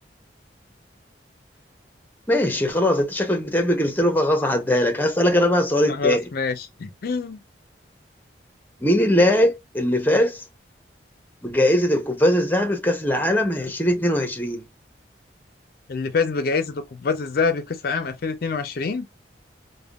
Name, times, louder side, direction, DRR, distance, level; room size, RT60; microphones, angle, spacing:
voice 1, 2.3-6.3 8.8-10.4 11.4-14.7, left 1 dB, 10° left, 0.7 m, -20 dB
voice 2, 5.9-7.4 15.9-19.1, left 4 dB, 55° left, 0.4 m, -25 dB
3.4 x 2.1 x 2.3 m
head